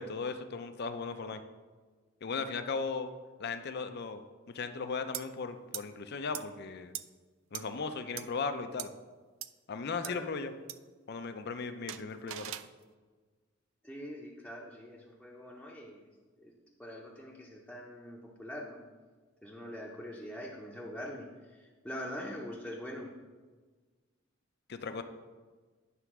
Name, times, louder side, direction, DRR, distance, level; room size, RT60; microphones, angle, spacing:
voice 1, 0.0-1.4 2.2-3.1 3.4-6.9 7.5-8.9 9.7-10.5 11.1-12.5 24.7-25.0, left 4 dB, 55° left, 9 dB, 0.5 m, -37 dB
sound 1, 5.1-5.2 5.7-5.8 6.3-6.4 6.9-7.0 7.5-7.6 8.2-8.3 8.8-8.9 9.4-9.5 10.0-10.1 10.7-10.8 11.9-12.7, right 13 dB, 85° right, 0.3 m, -39 dB
voice 2, 13.8-16.0 16.4-16.5 16.8-18.8 19.4-23.1, equal, 5° left, -4 dB, 0.7 m, -43 dB
9.6 x 3.4 x 6.0 m, 1.4 s
head